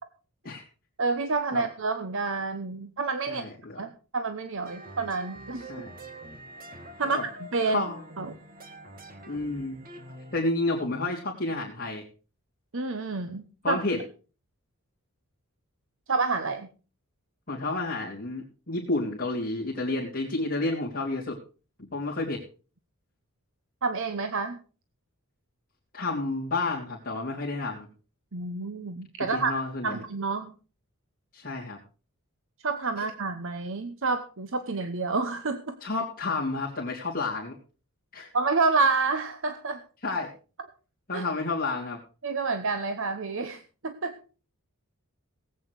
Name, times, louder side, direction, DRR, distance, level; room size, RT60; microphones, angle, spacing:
voice 1, 1.0-3.4 3.8-5.7 7.0-7.8 8.2-8.3 12.7-13.8 16.1-16.7 23.8-24.6 28.3-29.5 29.8-30.5 32.6-35.8 38.3-39.8 41.1-41.2 42.2-44.2, right 4 dB, 60° right, 9 dB, 1.0 m, -29 dB
voice 2, 3.3-3.8 5.7-5.9 7.0-7.2 7.7-8.0 9.3-9.8 10.3-12.0 13.6-14.0 17.5-21.4 21.8-22.4 25.9-27.9 29.3-30.0 31.3-31.8 33.0-33.1 35.8-37.5 38.1-38.3 40.0-40.3 41.1-42.0, left 2 dB, 40° left, -6 dB, 3.0 m, -30 dB
sound 1, 4.7-10.4, right 1 dB, 40° right, 2.0 m, -45 dB
18.0 x 8.8 x 4.8 m, 0.36 s
head